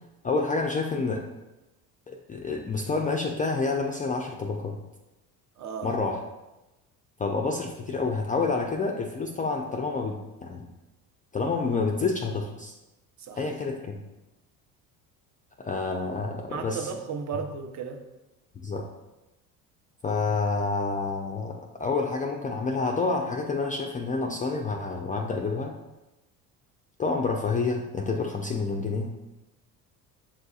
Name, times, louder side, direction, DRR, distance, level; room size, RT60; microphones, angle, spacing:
voice 1, 0.2-1.2 2.1-4.8 5.8-6.2 7.2-10.7 11.3-12.7 13.4-14.0 15.6-16.9 18.6-18.8 20.0-21.5 21.8-25.7 27.0-29.1, left 4 dB, 20° left, 1 dB, 0.4 m, -28 dB
voice 2, 5.6-5.9 13.2-13.5 16.5-18.0, right 6 dB, 40° right, 4 dB, 0.7 m, -35 dB
7.3 x 2.7 x 2.4 m, 1.0 s
hypercardioid pair, 70°, 43 cm